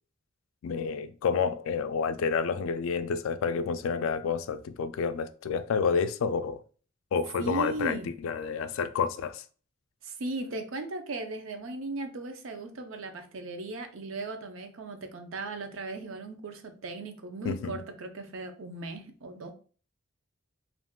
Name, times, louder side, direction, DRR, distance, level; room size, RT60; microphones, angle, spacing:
voice 1, 0.6-6.6 7.1-9.4 17.4-17.8, left 5 dB, 80° left, 0.3 m, -29 dB
voice 2, 7.4-8.1 10.0-19.5, right 2 dB, 75° right, 0.5 m, -37 dB
3.5 x 2.5 x 2.2 m
head